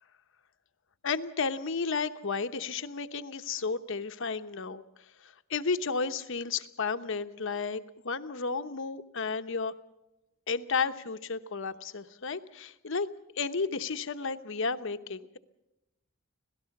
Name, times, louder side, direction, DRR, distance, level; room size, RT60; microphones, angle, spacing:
voice 1, 1.0-4.8 5.2-9.7 10.5-13.1 13.4-15.4, left 4 dB, 60° left, 10 dB, 1.0 m, -32 dB
26.0 x 17.5 x 5.9 m, 0.93 s
head